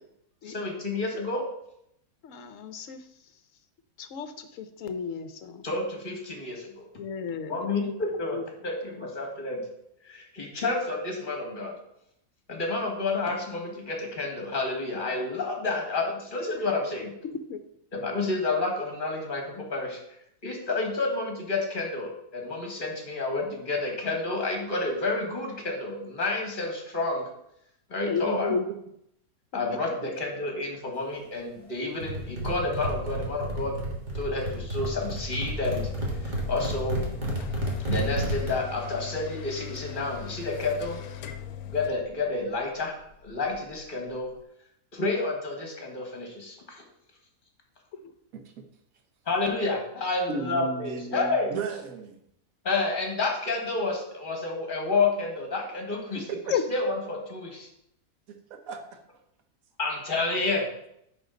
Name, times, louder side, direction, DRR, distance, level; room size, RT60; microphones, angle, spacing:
voice 1, 0.4-1.4 5.6-6.9 7.5-8.4 8.6-9.6 10.0-11.7 12.5-17.1 17.9-20.0 20.4-27.3 27.9-28.5 29.5-33.7 34.2-35.9 36.2-37.0 37.9-41.0 41.7-42.9 43.2-44.3 44.9-46.8 49.3-51.5 52.6-56.2 56.7-57.7 59.8-60.7, left 3 dB, 35° left, 1 dB, 1.7 m, -30 dB
voice 2, 2.2-3.1 4.0-5.6 7.0-8.4 9.0-9.1 16.6-16.7 17.2-17.6 28.1-28.7 29.7-29.8 48.0-48.1 56.5-56.6, left 6 dB, 65° left, 9 dB, 1.0 m, -33 dB
voice 3, 28.3-28.6 30.0-30.1 48.3-48.6 50.3-52.2 56.1-56.4 58.3-59.0, right 5 dB, 70° right, 5 dB, 1.3 m, -36 dB
sound 1, 32.0-38.5, right 1 dB, 30° right, 1.6 m, -31 dB
sound 2, 35.7-44.4, left 10 dB, 85° left, 1.1 m, -40 dB
10.0 x 4.1 x 3.9 m, 0.76 s
omnidirectional pair, 1.5 m